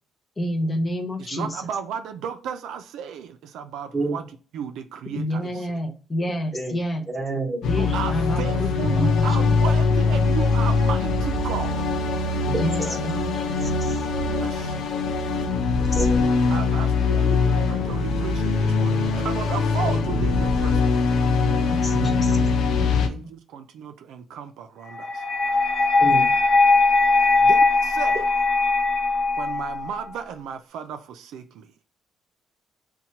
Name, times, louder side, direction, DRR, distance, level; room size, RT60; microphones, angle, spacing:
voice 1, 0.4-1.6 5.1-7.0 7.6-9.4 12.4-14.0 15.9-16.3 21.7-22.3 22.7-23.3, equal, 25° left, 0.5 m, -29 dB
voice 2, 1.2-4.2 4.5-5.7 7.8-12.0 14.0-14.8 16.5-21.0 22.6-25.2 27.4-28.2 29.3-31.7, right 8 dB, 85° right, 0.3 m, -34 dB
voice 3, 7.1-7.6 12.5-13.0 15.7-16.3 21.9-22.3 26.0-26.3, right 2 dB, 15° right, 0.9 m, -29 dB
sound 1, 7.6-23.1, left 4 dB, 80° left, 0.4 m, -22 dB
sound 2, 25.0-30.0, left 3 dB, 65° left, 0.9 m, -20 dB
2.8 x 2.2 x 2.7 m
cardioid pair, 90°, 0 cm